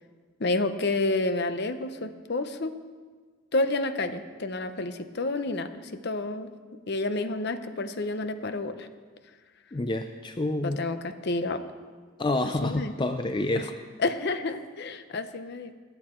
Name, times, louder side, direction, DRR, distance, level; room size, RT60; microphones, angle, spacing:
voice 1, 0.4-2.8 3.5-6.5 6.9-8.9 10.6-11.6 12.6-12.9 13.6-13.7 14.0-15.7, left 2 dB, 50° left, 10 dB, 0.7 m, -29 dB
voice 2, 9.7-10.8 12.2-13.7, left 2 dB, 20° left, 7 dB, 0.4 m, -28 dB
20.5 x 8.1 x 4.4 m, 1.5 s
head